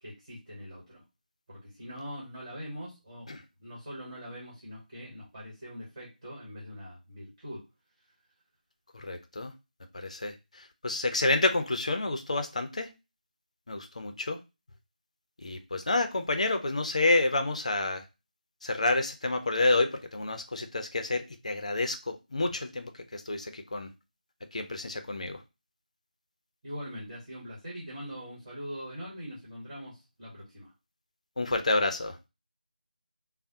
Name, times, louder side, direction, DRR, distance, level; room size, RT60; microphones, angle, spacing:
voice 1, 0.0-1.0 1.5-3.3 3.6-7.6 26.6-30.7, equal, 30° right, 1.4 m, -42 dB
voice 2, 8.9-9.5 9.9-10.3 10.8-12.9 13.7-14.4 15.4-18.0 18.6-23.9 24.5-25.4 31.4-32.2, left 2 dB, 45° left, 0.4 m, -29 dB
3.3 x 2.0 x 2.7 m
figure-of-eight pair, 165°, 5 cm